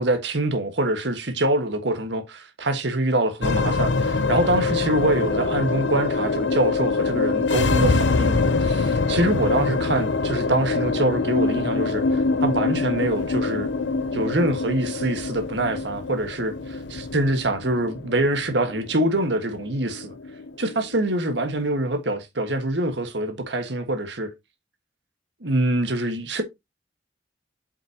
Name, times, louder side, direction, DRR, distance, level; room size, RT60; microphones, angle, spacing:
voice 1, 0.0-13.7 14.1-20.1 20.6-24.3 25.4-26.4, right 1 dB, 70° right, 1.5 m, -25 dB
sound 1, 3.4-21.9, left 3 dB, 75° left, 0.7 m, -24 dB
7.1 x 5.7 x 2.8 m
head